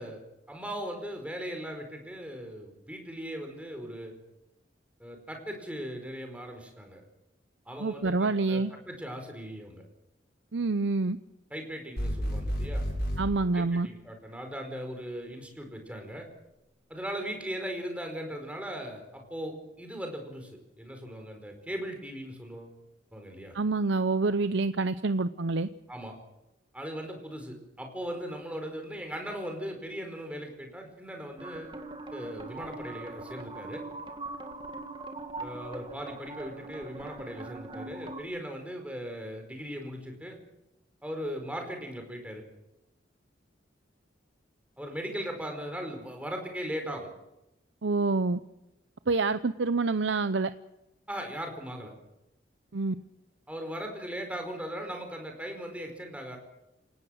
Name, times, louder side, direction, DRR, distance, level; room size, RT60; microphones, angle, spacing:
voice 1, 0.0-4.1 5.0-7.0 7.6-9.8 11.5-12.9 13.5-16.3 16.9-20.5 20.8-22.7 23.1-23.5 25.9-26.1 26.7-31.8 32.1-33.8 35.4-40.4 41.0-42.4 44.8-47.1 51.1-51.9 53.5-56.4, equal, 5° right, 4 dB, 4.8 m, -38 dB
voice 2, 7.8-8.7 10.5-11.2 13.2-13.9 23.5-25.7 47.8-48.4 49.1-50.5 52.7-52.9, right 3 dB, 75° right, 12 dB, 0.7 m, -27 dB
sound 1, 12.0-13.2, equal, 55° left, 7.8 m, -30 dB
sound 2, 31.4-38.2, right 2 dB, 25° right, 2.1 m, -41 dB
28.0 x 18.0 x 6.5 m, 0.90 s
head